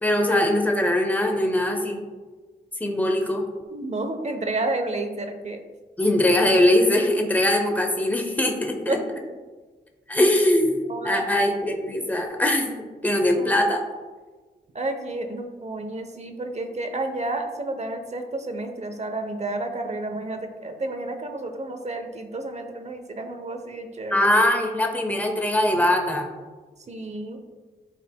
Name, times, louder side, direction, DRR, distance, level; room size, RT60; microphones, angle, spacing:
voice 1, 0.0-2.0 2.8-3.5 6.0-9.0 10.1-10.8 11.0-12.7 13.0-13.8 24.1-26.3, left 1 dB, 10° left, 2 dB, 1.0 m, -21 dB
voice 2, 3.7-5.6 8.9-9.0 10.9-11.3 13.4-13.5 14.7-24.3 26.9-27.4, right 2 dB, 40° right, 6 dB, 0.9 m, -31 dB
12.0 x 4.2 x 2.3 m, 1.4 s
cardioid pair, 80°, 17 cm